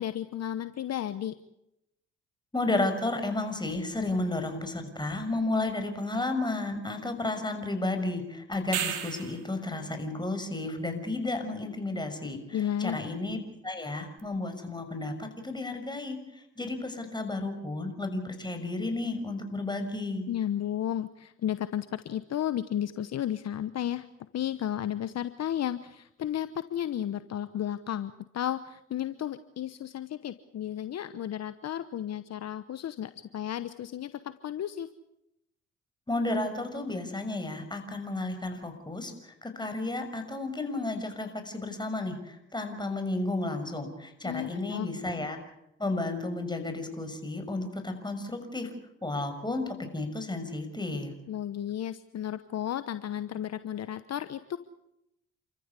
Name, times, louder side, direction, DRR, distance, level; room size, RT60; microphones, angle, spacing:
voice 1, 0.0-1.3 12.5-13.0 20.3-24.1 24.3-34.9 44.2-44.9 51.3-54.6, left 11 dB, 55° left, 12 dB, 1.1 m, -33 dB
voice 2, 2.5-13.4 13.6-20.3 36.1-45.4 45.8-48.7 49.0-51.1, left 2 dB, 15° left, 6 dB, 6.2 m, -32 dB
sound 1, 8.5-9.5 14.2-14.3, right 10 dB, 80° right, 2.9 m, -33 dB
29.0 x 14.5 x 8.4 m, 0.83 s
supercardioid pair, 65°, 30 cm